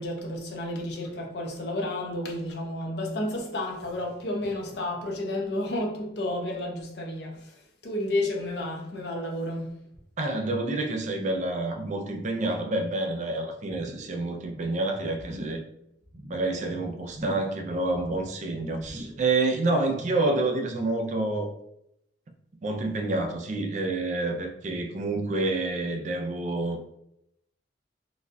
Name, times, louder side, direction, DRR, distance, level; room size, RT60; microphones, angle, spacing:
voice 1, 0.0-9.8, left 1 dB, 65° left, 0.7 m, -31 dB
voice 2, 10.2-15.6 16.3-21.5 22.6-27.0, right 2 dB, 45° right, 0.4 m, -28 dB
sound 1, 13.7-14.2 14.4-14.8 15.2-15.7 16.0-16.5 17.1-17.6 17.9-18.4 18.8-19.3 19.7-19.8, equal, 70° right, 0.8 m, -43 dB
3.9 x 2.3 x 2.6 m
head